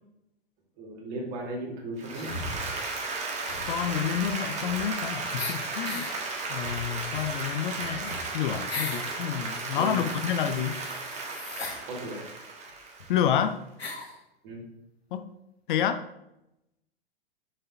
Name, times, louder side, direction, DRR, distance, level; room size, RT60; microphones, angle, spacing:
voice 1, 0.8-2.3 9.7-10.0 11.9-12.3 14.4-14.6, right 1 dB, 45° right, -1 dB, 2.9 m, -36 dB
Applause, 2.0-13.3, right 3 dB, 20° right, 1.5 m, -35 dB
sound 1, 2.1-3.0 3.4-5.0 5.4-6.1 6.6-9.1 9.5-11.8 12.7-12.8 13.0-13.1 13.8-14.2, left 3 dB, 90° left, 1.6 m, -39 dB
voice 2, 3.6-6.1 6.5-10.8 13.1-13.6 15.1-15.3 15.7-16.0, left 9 dB, 55° left, 10 dB, 0.6 m, -29 dB
6.7 x 5.7 x 3.9 m, 0.85 s
figure-of-eight pair, 100°, 30 cm